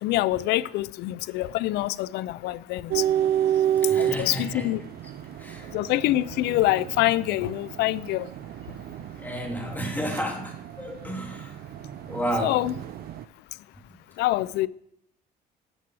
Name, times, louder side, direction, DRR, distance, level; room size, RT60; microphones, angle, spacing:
voice 1, 0.0-3.0 4.0-4.8 5.7-8.3 12.4-12.7 14.2-14.7, left 16 dB, 80° left, 0.4 m, -25 dB
sound 1, 2.9-13.2, right 11 dB, 65° right, 0.6 m, -30 dB
voice 2, 3.8-4.7 5.4-5.7 9.2-11.6 12.1-12.6, equal, 10° left, 2.6 m, -32 dB
11.5 x 7.3 x 4.8 m
cardioid pair, 110°, 17 cm